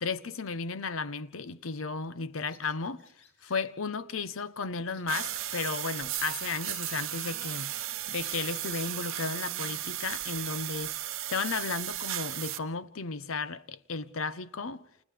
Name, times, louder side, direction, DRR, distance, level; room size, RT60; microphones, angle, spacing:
voice 1, 0.0-3.0 3.4-7.7 8.1-10.9 11.3-14.8, left 4 dB, 85° left, 0.8 m, -34 dB
Bird vocalization bird call bird song, 2.5-3.6 4.2-4.5 4.8-5.6 6.1-6.3 6.7-6.8 7.1-9.0 9.3-9.4 9.7-12.1, left 3 dB, 60° left, 3.2 m, -58 dB
sound 1, 5.1-12.6, right 13 dB, 80° right, 0.9 m, -35 dB
29.0 x 28.5 x 3.4 m
head